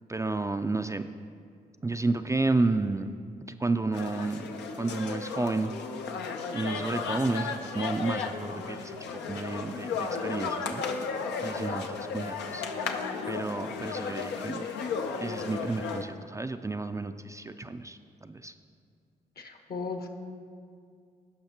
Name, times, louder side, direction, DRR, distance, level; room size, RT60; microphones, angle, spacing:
voice 1, 0.1-1.1 1.8-3.1 3.5-4.5 4.8-5.7 6.5-11.1 11.4-12.6 13.3-14.6 15.2-18.5, right 3 dB, 20° right, 8 dB, 0.3 m, -31 dB
sound 1, 3.9-16.0, left 5 dB, 85° left, 0.6 m, -34 dB
voice 2, 19.4-20.1, left 4 dB, 60° left, 4 dB, 1.2 m, -36 dB
17.0 x 5.7 x 2.9 m, 2.3 s
supercardioid pair, 55°, 18 cm